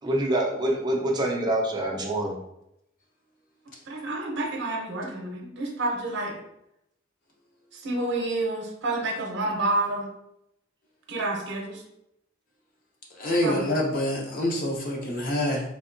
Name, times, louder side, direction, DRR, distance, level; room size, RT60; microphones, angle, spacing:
voice 1, 0.0-2.4, right 1 dB, 20° right, 0 dB, 0.4 m, -26 dB
voice 2, 3.9-6.3 7.7-10.1 11.1-11.8 13.4-13.7, right 2 dB, 60° right, 1 dB, 0.7 m, -29 dB
voice 3, 13.2-15.6, left 1 dB, 45° left, -1 dB, 0.7 m, -26 dB
3.5 x 2.8 x 2.5 m, 0.81 s
head